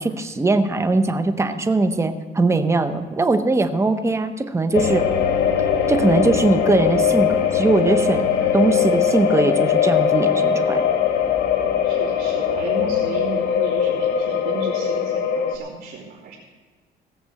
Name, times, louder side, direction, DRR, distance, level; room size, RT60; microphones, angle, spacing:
voice 1, 0.0-5.0 5.9-8.2 8.5-10.8, right 3 dB, 15° right, 9 dB, 1.0 m, -20 dB
sound 1, 4.7-15.6, left 7 dB, 70° left, 1.5 m, -20 dB
voice 2, 11.8-16.3, right 4 dB, 70° right, -7 dB, 3.1 m, -33 dB
17.0 x 6.0 x 7.7 m, 1.4 s
cardioid pair, 110°, 17 cm